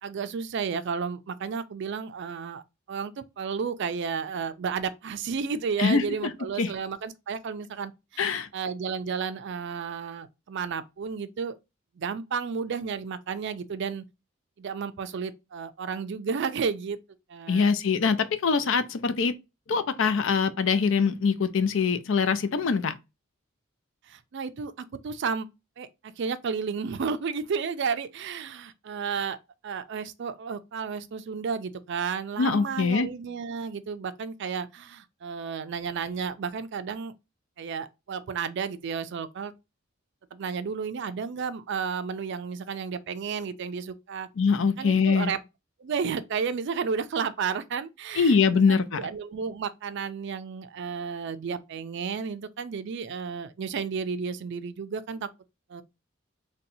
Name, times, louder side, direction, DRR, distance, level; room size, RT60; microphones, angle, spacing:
voice 1, 0.0-2.6 2.9-11.6 12.0-14.0 14.6-17.0 17.3-17.7 24.1-25.5 25.8-29.4 29.6-37.1 37.6-39.5 40.3-44.3 44.8-45.4 45.8-48.4 48.7-55.3 55.7-55.8, right 6 dB, 60° right, 0.4 m, -32 dB
voice 2, 5.8-6.3 6.6-6.7 8.2-8.5 17.5-19.3 19.7-23.0 32.4-33.1 44.4-45.3 48.2-49.0, left 5 dB, 70° left, 0.5 m, -23 dB
4.0 x 2.2 x 2.6 m
head